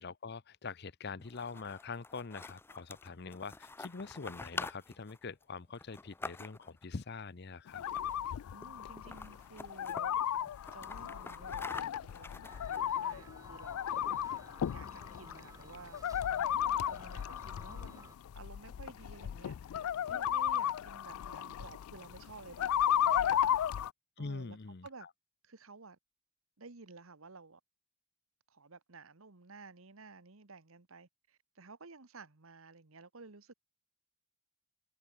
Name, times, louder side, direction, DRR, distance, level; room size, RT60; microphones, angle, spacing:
voice 1, 0.0-7.8 24.2-25.1, left 4 dB, 50° left, 0.7 m, -44 dB
sound 1, 1.2-6.8 7.9-8.3 8.6-8.7 9.0-10.0 10.5-13.1, left 3 dB, 10° left, 0.3 m, -46 dB
sound 2, 7.7-23.9, left 10 dB, 85° left, 0.3 m, -35 dB
voice 2, 8.5-10.1 10.7-14.0 14.7-23.5 24.2-24.6 24.8-25.1 25.4-26.0 26.6-27.6 28.5-33.5, right 3 dB, 75° right, 1.4 m, -54 dB
sound 3, 12.4-18.1, right 2 dB, 15° right, 1.3 m, -56 dB
head